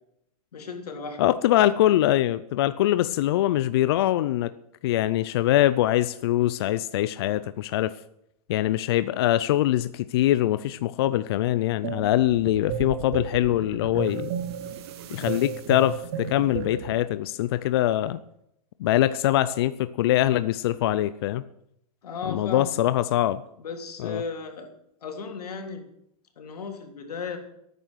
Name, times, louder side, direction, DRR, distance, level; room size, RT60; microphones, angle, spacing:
voice 1, 0.5-1.2 22.0-22.7 23.6-24.7 25.0-25.8 26.4-27.4, left 5 dB, 85° left, 4 dB, 3.4 m, -35 dB
voice 2, 1.2-4.5 4.8-7.9 8.5-14.3 15.1-18.2 18.8-21.4 22.2-23.4 24.0-24.2, left 13 dB, 40° left, 14 dB, 0.4 m, -23 dB
sound 1, 11.8-17.0, right 7 dB, 40° right, 1.5 m, -33 dB
18.0 x 9.2 x 6.3 m, 0.77 s
hypercardioid pair, 165°, 19 cm